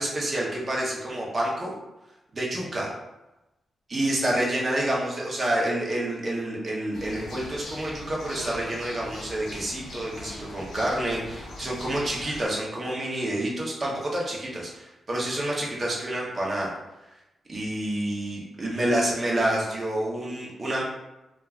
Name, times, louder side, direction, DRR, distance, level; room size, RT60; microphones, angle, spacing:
voice 1, 0.0-1.8 2.3-2.9 3.9-16.7 17.5-20.8, right 1 dB, 30° right, -3 dB, 0.7 m, -28 dB
sound 1, 6.9-12.5, left 1 dB, 90° left, 0.6 m, -41 dB
3.0 x 2.3 x 2.3 m, 0.98 s
wide cardioid pair, 145°, 0 cm